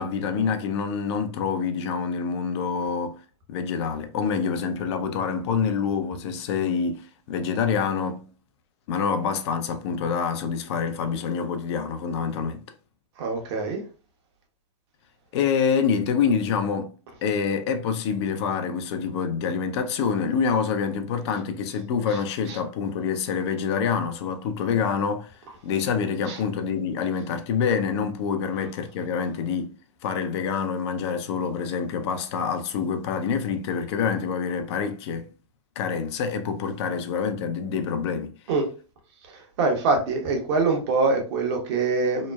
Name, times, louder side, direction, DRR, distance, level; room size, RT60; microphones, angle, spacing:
voice 1, 0.0-3.2 3.5-8.3 8.9-12.6 15.3-16.9 17.2-25.3 25.6-29.7 30.0-35.3 35.8-38.3, left 6 dB, 60° left, 0.5 m, -26 dB
voice 2, 13.2-13.8 26.3-26.4 38.5-38.6 39.6-42.3, right 3 dB, 60° right, 1.0 m, -24 dB
2.9 x 2.1 x 2.3 m
hypercardioid pair, 110°, 16 cm